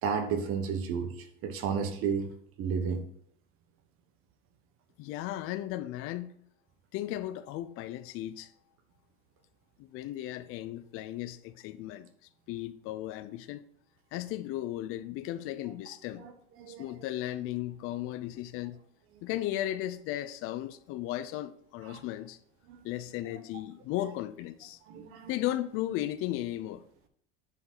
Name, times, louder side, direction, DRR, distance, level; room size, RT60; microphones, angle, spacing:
voice 1, 0.0-2.3 2.6-3.0 16.2-16.3 16.6-16.8 21.9-22.0 22.7-22.8 24.9-25.3, right 6 dB, 50° right, 1.2 m, -32 dB
voice 2, 5.0-6.3 6.9-8.5 9.8-12.1 12.5-13.6 14.1-16.3 16.7-18.8 19.2-22.4 22.8-24.8 25.3-26.8, left 14 dB, 50° left, 0.5 m, -35 dB
9.5 x 5.2 x 3.9 m
supercardioid pair, 130°, 29 cm